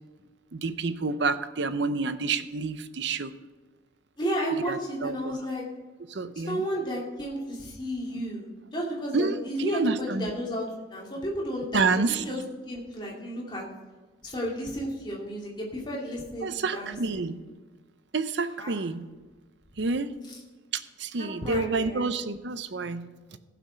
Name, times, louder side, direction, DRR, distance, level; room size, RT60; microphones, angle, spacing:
voice 1, 0.5-3.3 4.7-5.4 6.1-6.6 9.1-10.3 11.7-12.2 16.4-17.4 18.1-19.1 19.8-20.1 20.7-23.4, right 3 dB, 65° right, 12 dB, 0.6 m, -29 dB
voice 2, 4.2-5.6 6.3-13.7 14.2-17.2 18.6-18.8 20.3-20.4 21.2-22.1, equal, 25° left, -3 dB, 2.5 m, -33 dB
15.5 x 5.9 x 5.7 m, 1.3 s
head